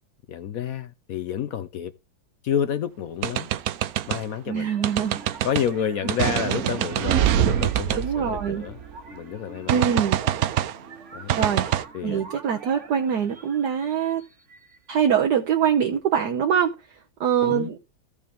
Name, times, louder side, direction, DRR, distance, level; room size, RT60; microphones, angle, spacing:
voice 1, 0.3-1.9 2.4-3.5 4.1-4.7 5.4-8.8 9.1-9.9 11.1-11.3 11.9-12.3 17.4-17.7, left 8 dB, 70° left, 0.8 m, -29 dB
sound 1, 3.2-4.2 4.8-5.7 6.1-9.0 9.7-10.8 11.3-11.8, right 12 dB, 80° right, 0.8 m, -24 dB
sound 2, 4.5-15.1, right 4 dB, 40° right, 1.5 m, -46 dB
voice 2, 4.5-5.2 7.9-8.6 9.7-10.2 11.3-14.2 14.9-16.7 17.2-17.8, right 8 dB, 60° right, 1.3 m, -23 dB
15.5 x 5.1 x 3.4 m
omnidirectional pair, 2.2 m